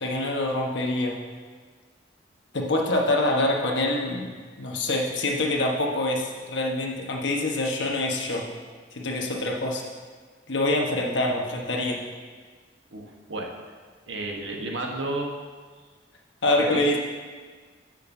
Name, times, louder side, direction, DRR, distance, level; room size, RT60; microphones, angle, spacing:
voice 1, 0.0-1.2 2.5-4.3 4.6-8.4 8.9-9.8 10.5-12.0 16.4-17.0, left 2 dB, 80° left, 0 dB, 1.2 m, -25 dB
voice 2, 12.9-13.5 14.1-15.3 16.5-16.8, right 2 dB, 85° right, 0 dB, 1.2 m, -31 dB
14.0 x 6.5 x 2.7 m, 1.5 s
head